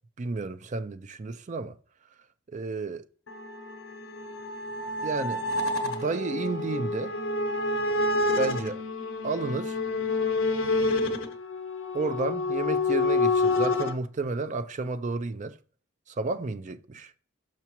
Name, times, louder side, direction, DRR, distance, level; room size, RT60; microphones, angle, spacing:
voice 1, 0.2-1.8 2.5-3.0 5.0-5.4 5.8-7.2 8.4-8.8 9.2-9.8 11.9-15.6 16.1-17.1, right 3 dB, 35° right, 0.4 m, -31 dB
sound 1, 3.3-13.9, left 2 dB, 70° left, 0.9 m, -28 dB
6.0 x 5.8 x 3.0 m
head